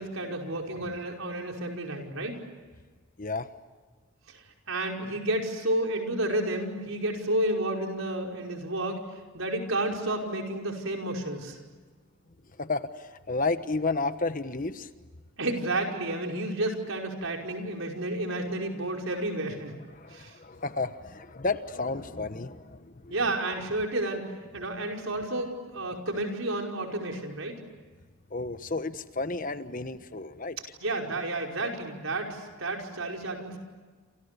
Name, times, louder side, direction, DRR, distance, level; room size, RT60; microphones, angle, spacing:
voice 1, 0.0-2.4 4.3-9.0 9.3-11.6 15.4-19.8 20.1-20.4 23.1-24.2 24.5-27.6 30.8-33.6, right 1 dB, 75° right, 2 dB, 5.3 m, -31 dB
voice 2, 3.2-3.5 12.6-14.9 19.9-23.1 28.3-30.6, left 3 dB, 40° left, 11 dB, 1.2 m, -32 dB
28.5 x 28.5 x 6.8 m, 1.4 s
head